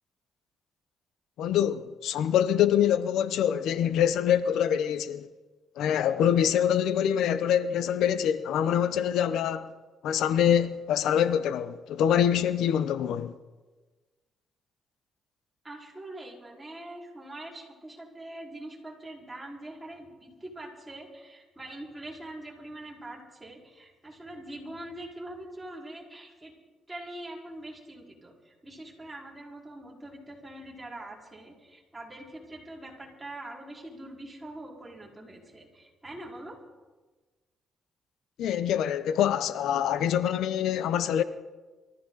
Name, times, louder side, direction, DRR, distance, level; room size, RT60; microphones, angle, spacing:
voice 1, 1.4-5.3 5.8-9.7 10.0-13.3 38.4-41.2, left 9 dB, 80° left, 0.7 m, -25 dB
voice 2, 15.6-26.5 26.9-36.6, right 1 dB, 15° right, 4.6 m, -43 dB
23.5 x 14.5 x 4.0 m
cardioid pair, 90°, 0 cm